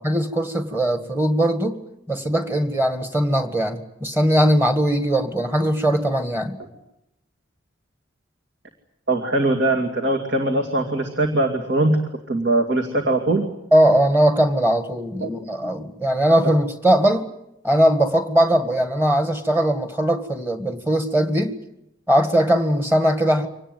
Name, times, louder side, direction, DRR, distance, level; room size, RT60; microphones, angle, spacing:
voice 1, 0.0-1.8 2.1-6.6 13.7-17.3 17.6-21.6 22.1-23.5, right 1 dB, 10° right, 7 dB, 1.8 m, -20 dB
voice 2, 9.1-12.0 12.3-13.4 15.2-15.4, right 2 dB, 65° right, 2 dB, 2.4 m, -21 dB
25.0 x 19.0 x 9.1 m, 0.83 s
head